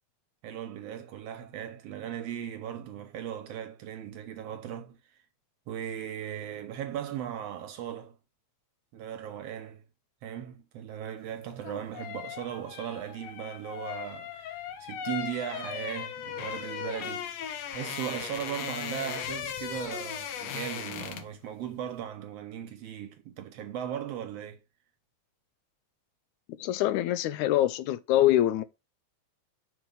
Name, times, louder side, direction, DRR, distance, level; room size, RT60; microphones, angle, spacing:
voice 1, 0.4-5.2 5.7-8.2 8.9-9.8 10.2-17.4 17.7-24.6, right 10 dB, 70° right, 1.6 m, -38 dB
sound 1, 11.4-21.4 21.7-21.9, left 9 dB, 70° left, 1.8 m, -38 dB
voice 2, 26.5-28.6, left 13 dB, 90° left, 2.0 m, -25 dB
6.2 x 4.1 x 5.0 m
omnidirectional pair, 3.4 m